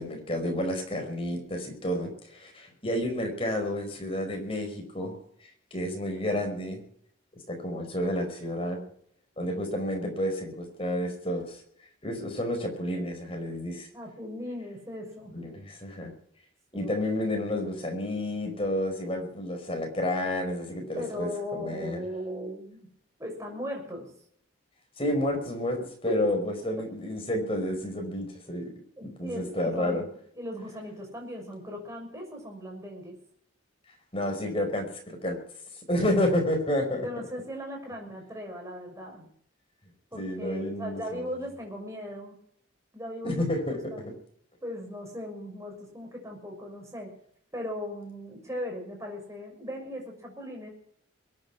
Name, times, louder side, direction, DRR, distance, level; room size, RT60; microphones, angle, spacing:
voice 1, 0.0-5.2 5.7-6.8 7.5-8.8 9.4-11.6 12.0-13.9 15.3-16.1 16.7-22.0 25.0-28.7 29.0-30.0 34.1-35.4 35.9-37.1 40.1-41.2 43.2-43.8, left 1 dB, 25° left, 3 dB, 5.0 m, -30 dB
voice 2, 13.9-15.4 16.7-16.9 21.0-22.9 23.2-24.1 26.1-26.3 29.0-33.2 37.0-39.3 40.1-42.4 42.9-44.1 44.6-47.1 47.5-50.7, left 1 dB, 15° right, 0 dB, 6.3 m, -38 dB
22.5 x 9.4 x 6.1 m, 0.66 s
head